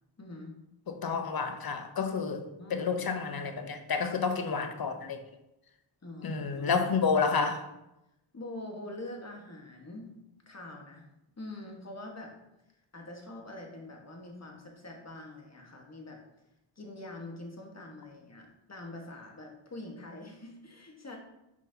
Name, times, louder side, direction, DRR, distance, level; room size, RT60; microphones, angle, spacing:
voice 1, 0.2-0.5 2.6-2.9 6.0-6.9 8.3-10.1 10.4-11.0 11.4-12.3 12.9-16.2 16.8-21.2, left 2 dB, 35° left, 1 dB, 1.5 m, -44 dB
voice 2, 0.9-2.4 2.7-5.2 6.2-7.7, left 5 dB, 50° left, 7 dB, 0.8 m, -30 dB
6.1 x 5.4 x 2.8 m, 0.90 s
cardioid pair, 55°, 48 cm